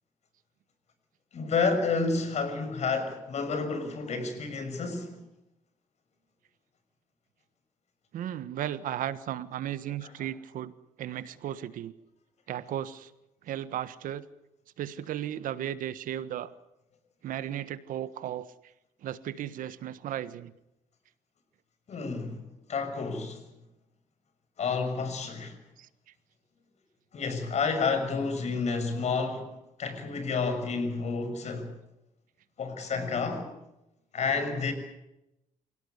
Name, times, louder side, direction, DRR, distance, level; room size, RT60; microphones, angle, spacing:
voice 1, 1.3-5.2 21.9-23.4 24.6-25.5 27.1-29.5 29.8-31.7 32.6-33.5 34.1-34.7, left 4 dB, 55° left, 6.3 m, -30 dB
voice 2, 8.1-10.7 11.0-11.9 12.5-13.1 13.4-14.2 14.8-16.5 17.2-18.5 19.0-20.5 25.8-25.9, right 11 dB, 75° right, 1.5 m, -35 dB
27.5 x 17.5 x 8.2 m
cardioid pair, 100°, 14 cm